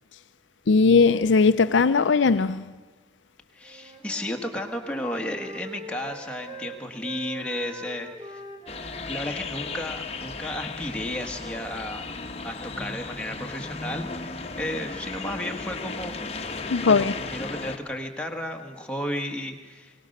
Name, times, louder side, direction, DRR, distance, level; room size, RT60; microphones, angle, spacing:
voice 1, 0.7-2.7 16.7-17.1, left 4 dB, 75° left, 0.5 m, -19 dB
voice 2, 3.5-8.4 9.1-12.1 12.4-16.2 16.8-19.9, left 1 dB, 5° left, 1.6 m, -33 dB
Wind instrument woodwind instrument, 3.6-10.4, right 2 dB, 25° right, 2.2 m, -43 dB
sound 1, 8.7-17.8, left 3 dB, 30° left, 1.1 m, -35 dB
23.0 x 18.0 x 6.6 m
head